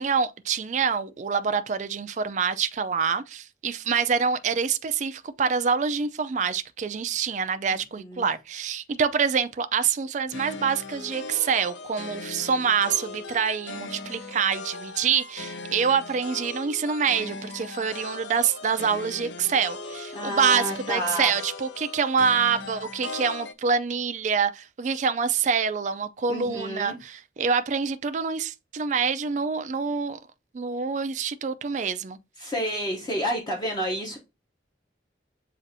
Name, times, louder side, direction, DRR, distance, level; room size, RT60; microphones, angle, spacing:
voice 1, 0.0-30.2 30.5-32.2, right 6 dB, 40° right, 0.3 m, -26 dB
voice 2, 7.6-8.3 20.1-21.3 26.3-27.0 32.4-34.2, equal, 20° left, 0.8 m, -30 dB
sound 1, 10.3-23.5, left 3 dB, 75° left, 0.5 m, -39 dB
7.3 x 2.5 x 2.6 m
head